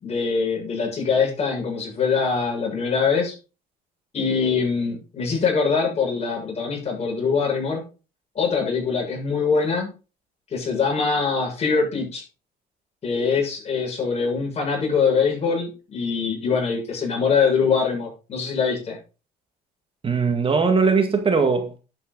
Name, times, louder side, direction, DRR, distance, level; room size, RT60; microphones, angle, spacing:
voice 1, 0.0-3.3 4.1-7.8 8.3-9.9 10.5-12.2 13.0-19.0, left 5 dB, 40° left, 6.8 m, -23 dB
voice 2, 20.0-21.8, right 4 dB, 30° right, 2.0 m, -20 dB
11.0 x 8.4 x 4.0 m
cardioid pair, 110°, 17 cm